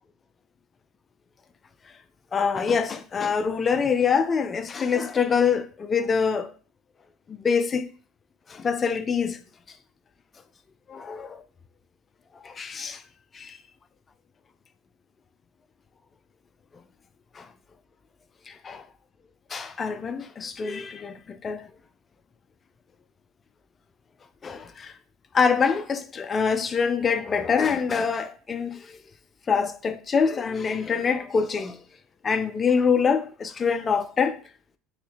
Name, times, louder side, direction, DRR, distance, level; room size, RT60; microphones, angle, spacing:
voice 1, 2.3-6.5 7.3-7.9 8.5-9.4 10.9-11.4 12.4-13.0 13.3-13.6 17.4-17.5 18.5-18.8 19.5-21.7 24.4-24.9 25.3-28.9 29.5-31.8 32.2-34.4, left 6 dB, 30° left, 0.4 m, -25 dB
4.0 x 2.5 x 2.8 m
hypercardioid pair, 90°, 0 cm